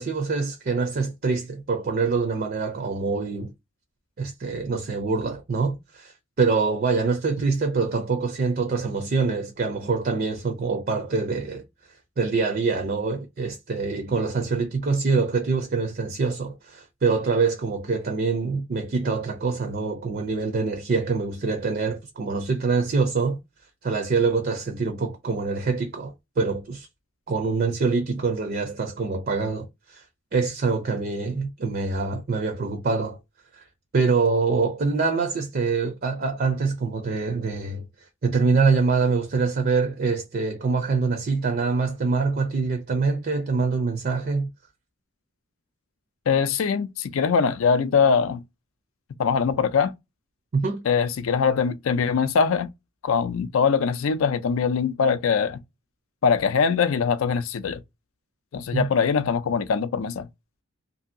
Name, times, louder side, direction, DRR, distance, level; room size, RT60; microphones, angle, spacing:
voice 1, 0.0-3.5 4.2-11.6 12.2-23.4 23.8-26.9 27.3-30.1 30.3-33.2 33.5-33.6 33.9-37.8 38.2-44.5 50.5-50.8 58.7-58.9, right 4 dB, 45° right, 0.4 m, -25 dB
voice 2, 46.3-48.4 49.2-49.9 50.8-52.7 53.0-55.6 56.2-57.8 58.5-60.3, left 6 dB, 75° left, 0.4 m, -22 dB
2.7 x 2.7 x 2.5 m
head